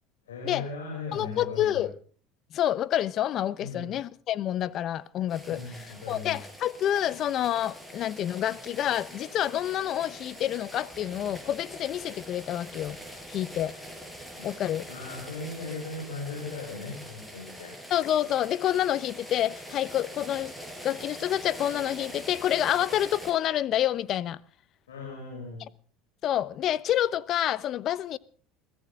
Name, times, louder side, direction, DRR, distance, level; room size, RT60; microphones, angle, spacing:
voice 1, 0.3-1.9 3.6-3.9 5.5-6.4 14.4-14.5 14.9-17.8 24.9-25.7, left 3 dB, 90° left, 7.1 m, -38 dB
voice 2, 1.1-1.9 2.5-13.0 13.3-13.7 14.4-14.9 17.9-20.5 20.8-24.4 26.2-28.2, left 11 dB, 50° left, 0.9 m, -28 dB
sound 1, 5.3-23.3, equal, 5° left, 6.9 m, -44 dB
22.0 x 16.0 x 3.8 m
hypercardioid pair, 80°, 0 cm